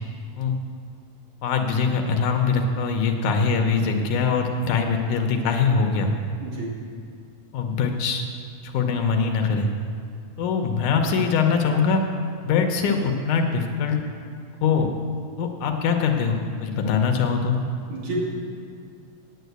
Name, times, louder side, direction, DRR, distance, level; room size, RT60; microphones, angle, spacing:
voice 1, 1.4-6.1 7.5-8.2 8.6-9.7 10.4-12.0 12.4-14.0 14.6-14.9 15.4-17.6, left 5 dB, 75° left, 4 dB, 2.2 m, -22 dB
voice 2, 6.4-6.7 17.9-18.3, right 1 dB, 70° right, -6 dB, 4.1 m, -29 dB
9.2 x 8.9 x 8.0 m, 2.3 s
omnidirectional pair, 3.7 m